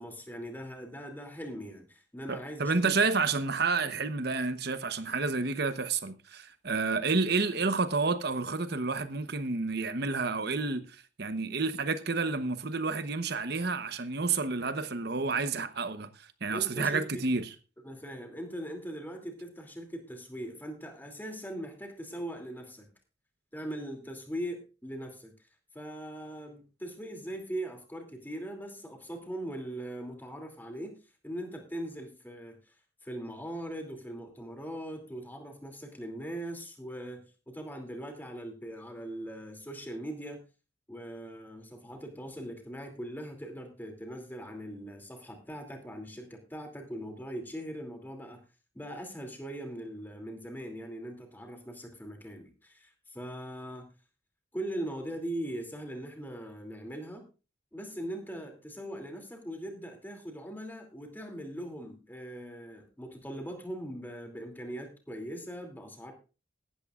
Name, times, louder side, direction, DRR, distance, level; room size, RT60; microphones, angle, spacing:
voice 1, 0.0-3.0 16.5-17.3 17.8-22.9 23.5-25.3 25.7-30.9 31.2-32.7 33.0-40.4 40.9-48.4 48.7-53.9 54.5-57.3 57.7-66.1, right 1 dB, 10° left, 2.8 m, -40 dB
voice 2, 2.3-17.5, right 4 dB, 55° right, 1.0 m, -30 dB
16.5 x 13.0 x 2.5 m
head